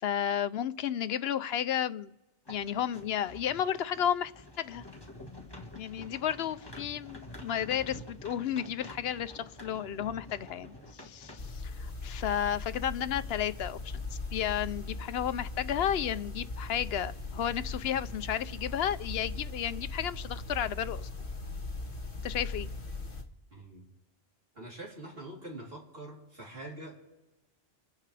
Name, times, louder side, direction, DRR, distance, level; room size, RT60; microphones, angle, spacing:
voice 1, 0.0-2.1 2.5-4.3 4.6-4.8 5.7-21.1 22.2-22.7, left 9 dB, 75° left, 13 dB, 0.9 m, -32 dB
sound 1, 2.4-11.5, left 1 dB, 25° left, 1.7 m, -48 dB
sound 2, 11.4-23.2, left 3 dB, 55° left, 1.7 m, -39 dB
voice 2, 23.5-23.8 24.5-26.9, right 1 dB, 65° right, -3 dB, 3.7 m, -44 dB
27.5 x 10.5 x 3.3 m, 1.1 s
omnidirectional pair, 1.1 m